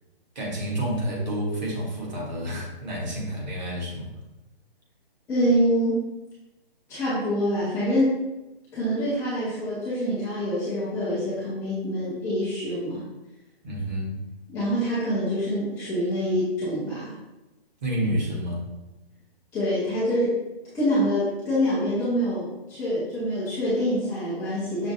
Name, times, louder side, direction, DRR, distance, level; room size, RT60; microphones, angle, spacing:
voice 1, 0.3-4.1 13.6-14.2 17.8-18.7, equal, 45° right, -2 dB, 1.3 m, -29 dB
voice 2, 5.3-6.0 6.9-8.2 8.7-13.0 14.5-17.1 19.5-20.3 20.7-24.9, equal, 10° left, -12 dB, 0.7 m, -25 dB
6.1 x 2.4 x 2.7 m, 1.0 s
hypercardioid pair, 155°, 30 cm